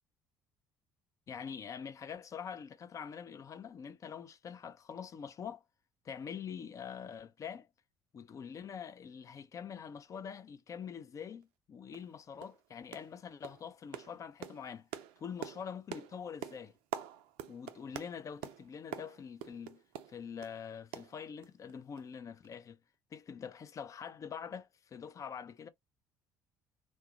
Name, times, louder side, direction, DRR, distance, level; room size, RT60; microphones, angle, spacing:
voice 1, 1.3-5.6 6.0-7.7 8.1-14.9 15.2-16.7 17.5-19.8 20.1-22.8 23.1-25.7, left 7 dB, 30° left, 0.4 m, -45 dB
sound 1, 11.4-11.5 11.9-12.1 12.4-12.6 12.9-13.2 13.4-20.6 20.9-21.7 22.0-22.1 22.4-22.5, right 10 dB, 55° right, 0.4 m, -46 dB
2.2 x 2.0 x 2.9 m
figure-of-eight pair, 55°, 11 cm